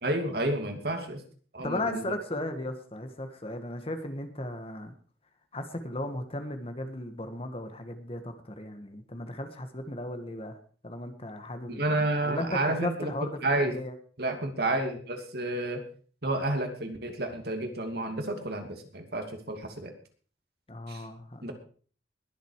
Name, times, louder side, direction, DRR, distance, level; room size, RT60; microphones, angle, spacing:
voice 1, 0.0-1.2 1.5-2.0 11.7-13.1 13.4-13.7 14.2-15.8 16.2-19.9 20.9-21.0 21.4-21.5, right 2 dB, 60° right, 5 dB, 2.8 m, -30 dB
voice 2, 1.6-4.9 5.5-10.6 10.8-11.8 12.2-13.9 20.7-21.5, left 1 dB, 35° left, 8 dB, 1.7 m, -36 dB
21.0 x 8.1 x 4.8 m, 0.43 s
head